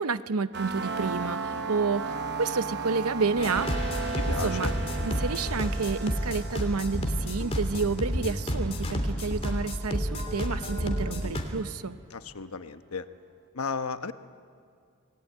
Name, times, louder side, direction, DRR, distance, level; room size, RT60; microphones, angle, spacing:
voice 1, 0.0-3.7 4.3-4.7 5.0-12.0, right 4 dB, 85° right, 13 dB, 0.8 m, -30 dB
sound 1, 0.5-9.2, right 4 dB, 50° right, 1.0 m, -35 dB
sound 2, 3.4-11.4, equal, 25° left, 2.9 m, -30 dB
voice 2, 4.1-4.7 12.1-13.1 13.5-14.1, left 5 dB, 80° left, 10 dB, 1.0 m, -34 dB
27.5 x 18.5 x 9.4 m, 2.2 s
head